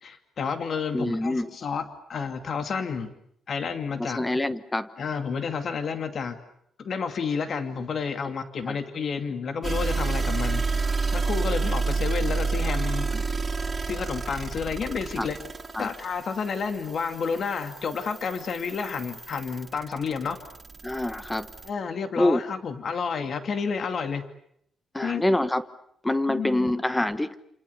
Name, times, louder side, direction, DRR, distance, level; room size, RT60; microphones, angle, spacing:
voice 1, 0.0-3.1 3.5-4.2 5.0-6.4 6.8-13.1 13.9-15.4 15.8-20.4 21.6-24.3 25.0-25.2 26.3-26.8, left 5 dB, 45° left, 8 dB, 2.5 m, -30 dB
voice 2, 0.9-1.5 4.0-4.9 8.7-8.8 13.1-13.2 15.2-15.3 15.7-15.9 20.8-21.5 22.2-22.4 24.9-25.6 26.0-27.4, left 1 dB, 10° left, 12 dB, 1.2 m, -25 dB
sound 1, 9.6-21.7, right 4 dB, 20° right, 2.8 m, -30 dB
29.0 x 28.0 x 6.9 m, 0.72 s
wide cardioid pair, 175°, 0 cm